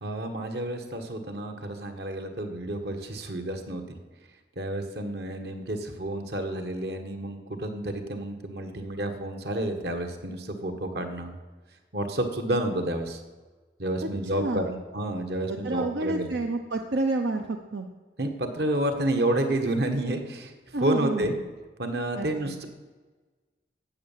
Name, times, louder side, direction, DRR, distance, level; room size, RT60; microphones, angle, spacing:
voice 1, 0.0-3.8 4.5-11.3 11.9-13.2 13.8-16.3 18.2-21.3 21.8-22.7, right 1 dB, 70° right, 6 dB, 1.6 m, -30 dB
voice 2, 14.4-14.8 15.5-17.9 20.7-21.4 22.2-22.3, right 2 dB, 90° right, 5 dB, 0.8 m, -29 dB
12.5 x 8.5 x 7.5 m, 1.3 s
head